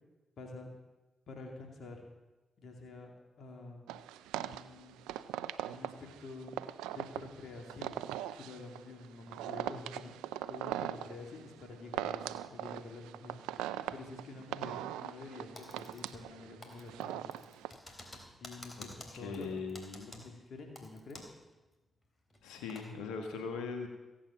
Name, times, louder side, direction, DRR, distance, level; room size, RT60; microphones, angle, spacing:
voice 1, 0.4-0.7 1.3-2.0 2.6-3.1 3.4-3.8 4.4-5.0 5.7-6.5 6.9-8.0 8.3-13.6 13.9-17.3 18.3-19.6 20.1-21.3, left 3 dB, 70° left, 2 dB, 2.4 m, -48 dB
sound 1, 3.9-17.7, right 12 dB, 90° right, 0.4 m, -40 dB
Typing, 15.6-16.4 16.6-21.4 21.7-21.8 22.3-22.9, left 1 dB, 40° left, 3.5 m, -51 dB
voice 2, 19.1-20.2 22.4-23.9, left 5 dB, 85° left, 4 dB, 1.5 m, -40 dB
15.5 x 8.7 x 7.5 m, 1.1 s
supercardioid pair, 40°, 0 cm